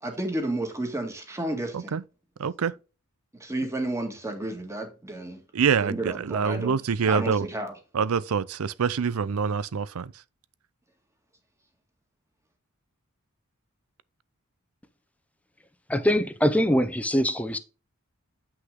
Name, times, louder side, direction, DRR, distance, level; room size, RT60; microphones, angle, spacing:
voice 1, 0.0-2.0 3.4-5.4 5.8-7.7, right 1 dB, 15° right, 1.8 m, -32 dB
voice 2, 2.4-2.7 5.5-7.5 7.9-10.1, right 6 dB, 70° right, 0.5 m, -25 dB
voice 3, 15.9-17.6, equal, 5° left, 0.7 m, -23 dB
7.9 x 5.9 x 3.7 m
head